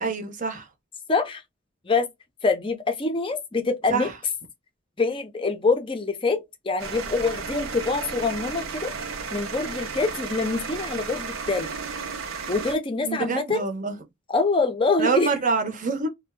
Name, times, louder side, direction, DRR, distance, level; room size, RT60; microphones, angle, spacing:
voice 1, 0.0-0.7 3.9-4.1 13.0-13.9 15.0-16.1, right 4 dB, 40° right, 0.7 m, -26 dB
voice 2, 1.1-1.4 1.9-2.1 2.4-4.1 5.0-8.9 9.3-11.7 12.5-13.6 14.3-15.3, left 3 dB, 25° left, 0.5 m, -25 dB
sound 1, 6.8-12.8, right 5 dB, 80° right, 0.6 m, -33 dB
2.6 x 2.1 x 3.4 m
head